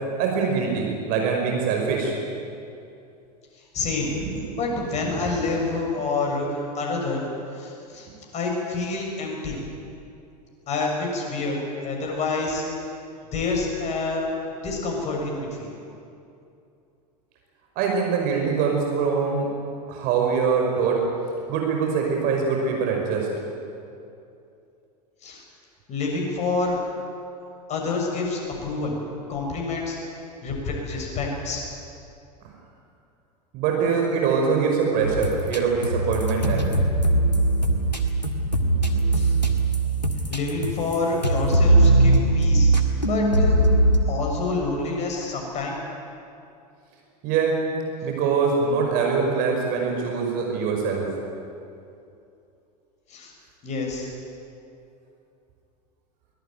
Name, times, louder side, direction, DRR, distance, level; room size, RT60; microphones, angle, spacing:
voice 1, 0.2-2.1 4.4-4.5 5.5-5.6 17.8-19.5 19.9-21.0 21.5-23.3 33.5-36.7 47.2-47.6 48.0-51.0, right 5 dB, 40° right, 1 dB, 5.3 m, -23 dB
voice 2, 3.7-4.1 4.5-7.3 7.5-8.1 8.3-9.6 10.7-12.7 13.3-14.3 14.6-15.7 25.2-25.4 25.9-26.8 27.7-29.0 29.3-30.0 30.4-31.6 39.1-39.3 40.3-42.7 43.1-43.6 44.1-45.8 53.1-53.3 53.6-54.1, left 3 dB, 30° left, -1 dB, 7.1 m, -27 dB
sound 1, 35.0-41.0 41.2-44.0, right 2 dB, 90° left, 1.9 m, -20 dB
23.5 x 18.5 x 9.2 m, 2.6 s
figure-of-eight pair, 85°, 21 cm